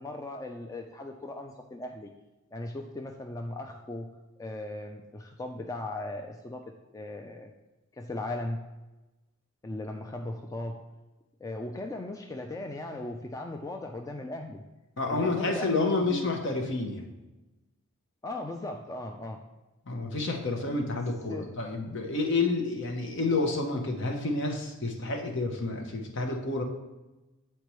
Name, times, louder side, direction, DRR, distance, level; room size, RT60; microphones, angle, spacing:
voice 1, 0.0-2.1 2.5-4.1 4.4-6.6 6.9-7.5 8.0-8.6 9.6-10.8 11.4-14.6 15.1-16.3 18.2-19.4 20.9-21.0 21.3-21.5, left 2 dB, 15° left, 3 dB, 0.3 m, -37 dB
voice 2, 15.0-17.1 19.9-26.6, left 3 dB, 60° left, 3 dB, 0.9 m, -29 dB
8.2 x 4.4 x 3.1 m, 1.1 s
head